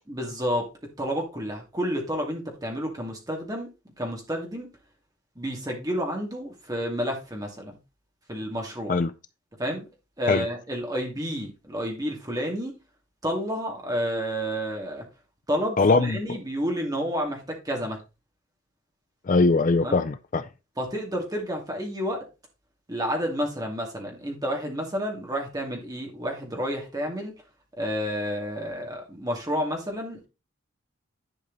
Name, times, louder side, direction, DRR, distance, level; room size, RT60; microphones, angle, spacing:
voice 1, 0.1-0.7 1.0-3.7 4.0-4.7 5.4-7.7 8.3-9.0 9.6-9.8 10.2-12.7 13.2-15.0 15.5-18.0 19.8-20.0 20.8-22.2 22.9-27.3 27.8-30.3, equal, 15° right, 2.5 m, -30 dB
voice 2, 15.8-16.4 19.3-20.4, left 3 dB, 35° left, 0.4 m, -21 dB
11.0 x 5.3 x 4.0 m
head